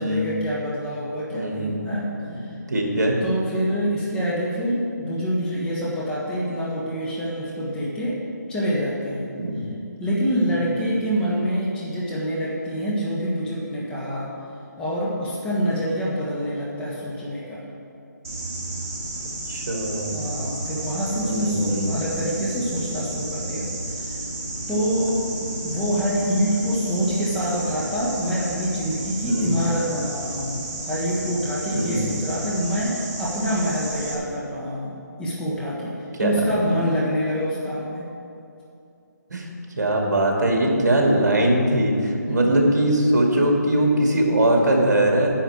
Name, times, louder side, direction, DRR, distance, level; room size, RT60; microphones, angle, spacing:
voice 1, 0.0-2.1 2.3-2.5 3.2-8.2 8.5-9.3 10.0-14.3 14.8-17.6 20.1-23.7 24.0-24.2 24.7-34.9 35.2-38.1 42.3-42.5, equal, 5° left, -7 dB, 1.3 m, -26 dB
voice 2, 1.3-1.8 2.3-2.4 2.7-3.2 9.4-9.6 19.5-20.3 21.2-21.9 29.3-29.5 31.7-32.0 36.2-36.3 39.3-39.4 39.8-45.3, right 1 dB, 65° right, 0 dB, 2.3 m, -21 dB
sound 1, 18.2-34.1, right 2 dB, 45° right, 2.7 m, -32 dB
10.0 x 5.5 x 8.5 m, 2.6 s
figure-of-eight pair, 160°, 10 cm